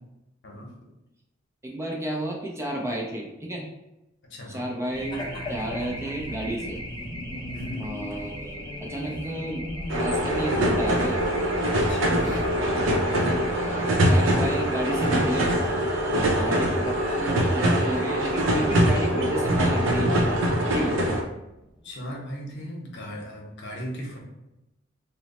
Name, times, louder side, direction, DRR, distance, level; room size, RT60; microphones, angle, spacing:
voice 1, 1.6-3.7 4.5-5.2 5.5-6.8 7.8-9.7 9.9-11.2 12.2-12.5 13.5-15.5 16.1-20.4 20.7-21.0, right 1 dB, 15° right, -1 dB, 0.4 m, -32 dB
voice 2, 4.3-4.7 7.5-7.9 11.8-12.2 13.8-14.0 16.3-16.6 21.8-24.2, equal, 60° left, -1 dB, 0.8 m, -37 dB
Race car auto racing / Alarm, 4.9-21.9, left 1 dB, 25° left, 0.7 m, -37 dB
sound 1, 9.9-21.2, equal, 70° right, 0.6 m, -23 dB
2.9 x 2.0 x 4.1 m, 0.92 s
head